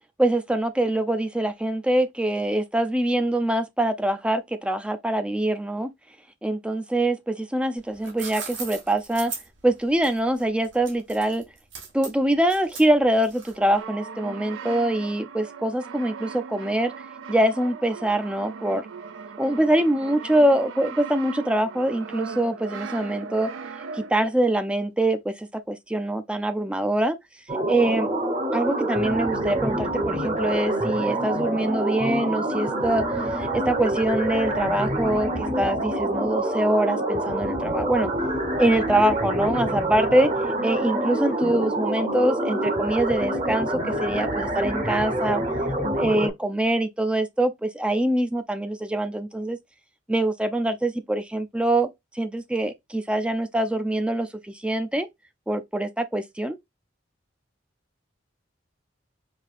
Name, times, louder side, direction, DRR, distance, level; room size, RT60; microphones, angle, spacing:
voice 1, 0.2-5.9 6.4-9.3 9.6-11.4 11.9-16.9 17.3-18.8 19.4-23.5 23.9-27.2 27.7-28.1 28.5-33.0 33.4-38.1 38.6-40.3 40.6-45.4 45.8-49.6 50.1-55.1 55.5-56.6, right 1 dB, 5° right, 0.4 m, -24 dB
sound 1, 7.8-13.8, right 5 dB, 65° right, 1.4 m, -38 dB
Brass instrument, 13.6-24.4, right 6 dB, 85° right, 0.4 m, -39 dB
sound 2, 27.5-46.3, right 1 dB, 35° right, 1.0 m, -26 dB
4.8 x 2.7 x 2.4 m
head